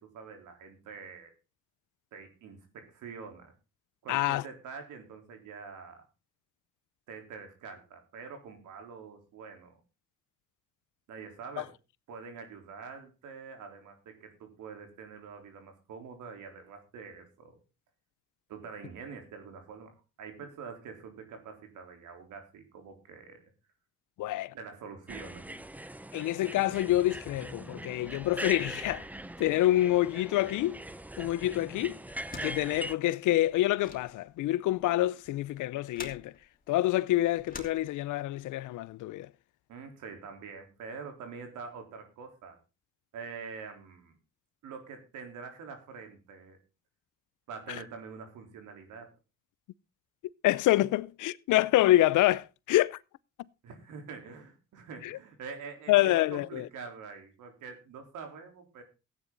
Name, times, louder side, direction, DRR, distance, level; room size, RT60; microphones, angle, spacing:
voice 1, 0.0-1.3 2.1-3.5 4.0-6.0 7.1-9.8 11.1-11.7 12.1-17.6 18.5-23.5 24.5-25.6 39.7-42.6 43.1-44.2 44.6-46.6 47.5-49.1 53.6-58.8, right 5 dB, 80° right, 3.9 m, -45 dB
voice 2, 4.1-4.4 11.6-11.7 24.2-24.5 26.1-29.1 29.4-30.8 31.2-32.0 32.4-36.3 36.7-39.3 50.4-53.0 55.0-55.2 55.9-56.7, left 15 dB, 80° left, 0.6 m, -27 dB
sound 1, 25.1-32.9, right 1 dB, 5° right, 0.6 m, -41 dB
sound 2, 32.1-38.4, left 3 dB, 30° left, 3.0 m, -49 dB
15.0 x 9.6 x 4.0 m
cardioid pair, 90°, 30 cm